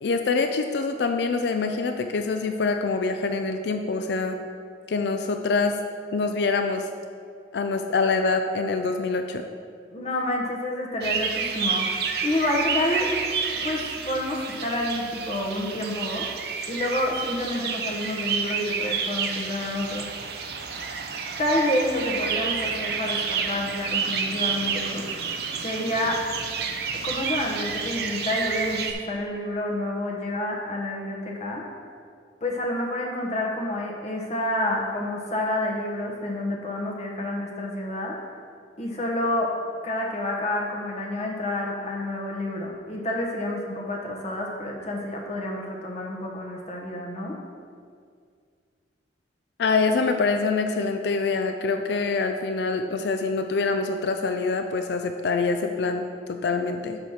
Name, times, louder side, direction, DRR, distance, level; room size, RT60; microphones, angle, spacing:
voice 1, 0.0-4.4 4.9-5.8 6.1-6.9 7.5-9.4 49.6-57.0, left 4 dB, 65° left, 6 dB, 0.4 m, -25 dB
voice 2, 9.9-13.1 13.6-16.3 16.7-20.4 21.4-25.0 25.6-26.2 27.0-31.6 32.4-38.1 38.8-39.5 39.8-47.3, left 1 dB, 40° left, -1 dB, 1.1 m, -29 dB
sound 1, 11.0-28.9, right 6 dB, 60° right, 0.6 m, -30 dB
6.3 x 5.2 x 5.7 m, 2.2 s
head